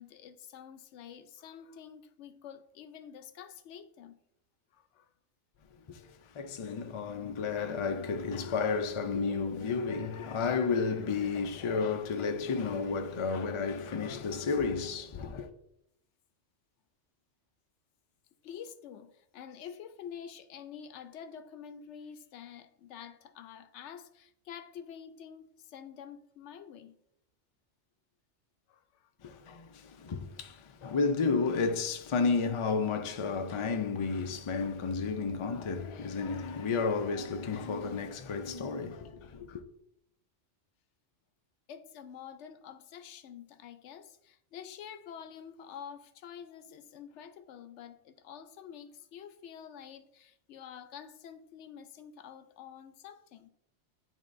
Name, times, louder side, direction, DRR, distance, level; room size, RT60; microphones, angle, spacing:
voice 1, 0.0-4.2 4.7-5.1 18.4-26.9 28.7-29.4 41.7-53.5, left 8 dB, 75° left, 0.8 m, -48 dB
voice 2, 5.9-15.5 29.2-39.6, left 4 dB, 55° left, 0.3 m, -32 dB
10.5 x 3.6 x 2.5 m
omnidirectional pair, 1.2 m